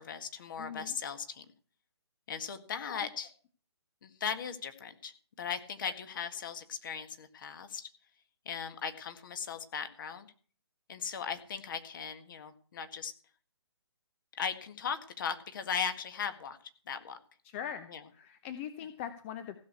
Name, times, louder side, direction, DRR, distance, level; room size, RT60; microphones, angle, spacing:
voice 1, 0.0-1.5 2.3-3.3 4.0-7.9 8.5-10.3 10.9-13.1 14.4-16.6 16.9-17.2 17.9-18.0, left 7 dB, 45° left, 9 dB, 1.8 m, -38 dB
voice 2, 0.6-0.9 2.8-3.1 5.8-5.9 17.4-19.6, left 9 dB, 25° left, 10 dB, 0.8 m, -42 dB
16.0 x 6.5 x 8.2 m, 0.43 s
figure-of-eight pair, 145°, 15 cm